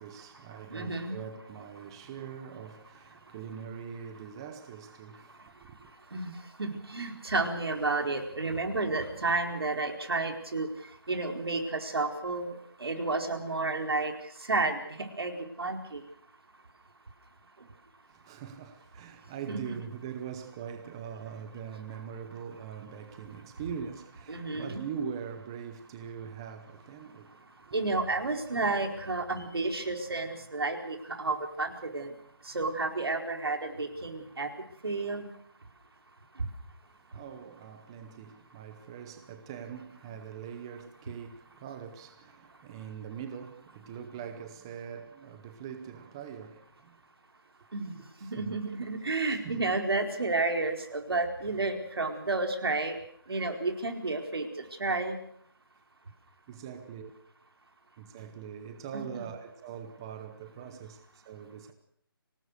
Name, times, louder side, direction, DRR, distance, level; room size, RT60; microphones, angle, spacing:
voice 1, 0.0-5.9 18.1-27.4 37.0-47.0 47.9-48.6 49.3-49.8 51.1-51.2 52.0-52.2 53.3-53.7 56.5-57.1 58.0-61.7, right 7 dB, 10° right, 0.8 m, -42 dB
voice 2, 0.7-1.1 6.1-6.3 6.6-10.7 11.1-12.5 12.8-14.1 14.5-14.8 15.2-16.0 24.3-24.9 27.7-32.1 32.5-34.5 34.8-35.3 47.7-47.9 48.3-53.0 53.3-54.5 54.8-55.2 58.9-59.0, right 3 dB, 85° right, 4.5 m, -31 dB
25.0 x 18.5 x 6.6 m
hypercardioid pair, 175°, 13 cm